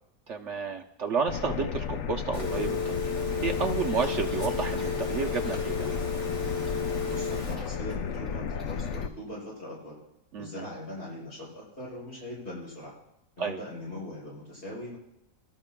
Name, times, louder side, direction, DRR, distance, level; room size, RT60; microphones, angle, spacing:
voice 1, 0.3-5.9 10.3-10.7 13.4-13.6, right 5 dB, 55° right, 4 dB, 0.9 m, -31 dB
sound 1, 1.3-9.1, left 7 dB, 65° left, 0.7 m, -34 dB
Telephone, 2.3-7.5, left 4 dB, 80° left, 3.7 m, -32 dB
sound 2, 4.0-5.5 5.8-6.2 6.4-9.0, right 1 dB, ahead, 3.8 m, -51 dB
voice 2, 7.1-10.0 10.4-12.9 13.4-15.0, left 1 dB, 35° left, -6 dB, 6.7 m, -40 dB
23.5 x 13.0 x 2.2 m, 0.86 s
omnidirectional pair, 1.7 m